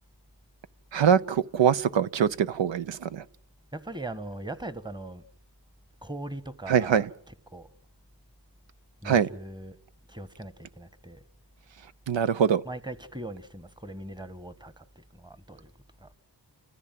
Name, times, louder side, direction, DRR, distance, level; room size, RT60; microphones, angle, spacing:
voice 1, 0.9-3.2 6.7-7.1 9.0-9.3 12.1-12.6, right 8 dB, 85° right, 0.8 m, -23 dB
voice 2, 3.7-5.2 6.0-7.7 9.0-9.8 10.1-11.2 12.6-15.7 16.0-16.1, right 1 dB, 10° right, 1.4 m, -40 dB
29.0 x 14.5 x 7.7 m
wide cardioid pair, 70°, 43 cm